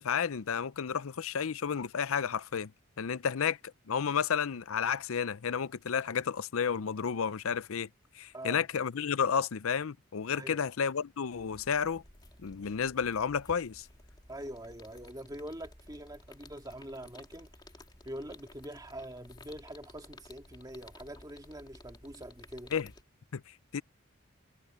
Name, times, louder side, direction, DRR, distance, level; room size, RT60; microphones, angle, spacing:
voice 1, 0.0-2.7 3.0-3.6 3.9-7.9 8.1-12.0 12.4-13.9 22.7-22.9 23.3-23.4 23.7-23.8, left 7 dB, 75° left, 0.5 m, -31 dB
voice 2, 10.3-10.6 14.3-17.5 18.0-22.7, right 1 dB, 15° right, 2.3 m, -44 dB
sound 1, 11.3-23.0, left 1 dB, 20° left, 3.2 m, -55 dB
head